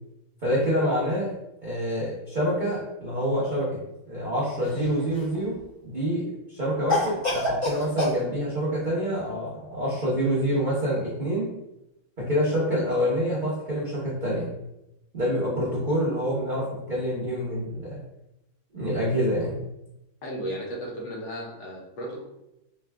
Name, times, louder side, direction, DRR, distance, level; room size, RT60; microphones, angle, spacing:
voice 1, 0.4-1.3 1.6-3.7 4.1-5.6 5.8-6.2 6.5-11.5 12.2-14.5 15.1-18.0 18.7-19.6, equal, 55° right, -8 dB, 0.5 m, -26 dB
Cough, 4.6-5.4 6.9-8.2, left 1 dB, 20° left, 1.0 m, -27 dB
voice 2, 20.2-22.2, right 1 dB, 65° left, -3 dB, 1.3 m, -34 dB
3.9 x 2.3 x 3.3 m, 0.88 s
omnidirectional pair, 2.3 m